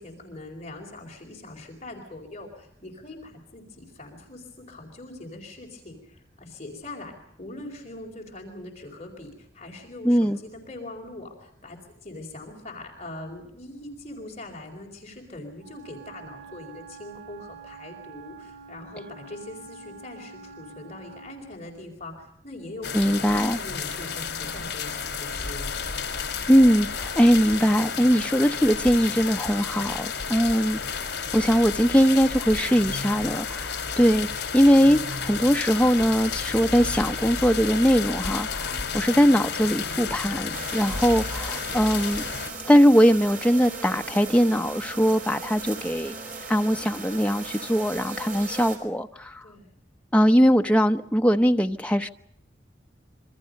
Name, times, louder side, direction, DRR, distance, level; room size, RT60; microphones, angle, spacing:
voice 1, 0.0-25.8 38.5-38.9 49.4-49.7, left 2 dB, 35° left, 4.4 m, -42 dB
voice 2, 10.0-10.4 22.9-23.6 26.5-34.3 34.5-42.2 42.7-46.1 46.5-49.4 50.1-52.1, equal, 5° left, 0.9 m, -21 dB
Wind instrument woodwind instrument, 15.5-21.6, right 5 dB, 80° right, 4.6 m, -46 dB
sound 1, 22.8-42.5, left 5 dB, 65° left, 4.0 m, -32 dB
sound 2, 40.5-48.8, right 4 dB, 50° right, 5.6 m, -38 dB
27.5 x 24.5 x 5.3 m
head